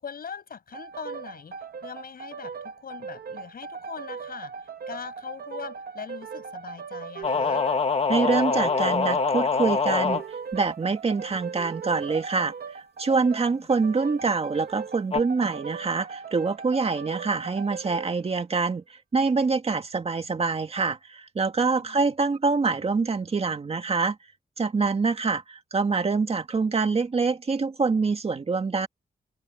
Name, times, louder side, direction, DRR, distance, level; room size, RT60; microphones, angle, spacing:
voice 1, 0.0-7.6 13.3-13.7 21.8-22.0, left 6 dB, 65° left, 7.0 m, -41 dB
sound 1, 0.7-18.2, right 6 dB, 70° right, 2.2 m, -38 dB
sound 2, 7.2-10.2 15.1-15.2, left 4 dB, 40° left, 1.5 m, -24 dB
voice 2, 8.1-10.2 10.5-24.2 24.6-28.9, right 4 dB, 40° right, 2.0 m, -25 dB
open air
wide cardioid pair, 135°, 16 cm